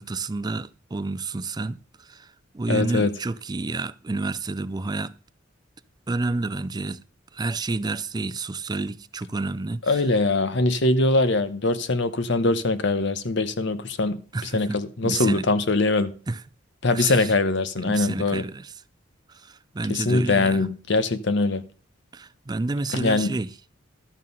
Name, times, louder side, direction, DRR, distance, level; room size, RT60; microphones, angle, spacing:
voice 1, 0.0-5.1 6.1-7.0 7.3-10.0 14.3-15.5 16.3-16.4 16.9-17.3 17.8-18.7 19.3-20.7 22.1-23.5, right 3 dB, 20° right, 0.4 m, -30 dB
voice 2, 2.7-3.1 9.9-16.1 16.8-18.5 19.9-21.7 22.9-23.3, left 2 dB, 65° left, 1.0 m, -22 dB
12.5 x 7.5 x 5.5 m
head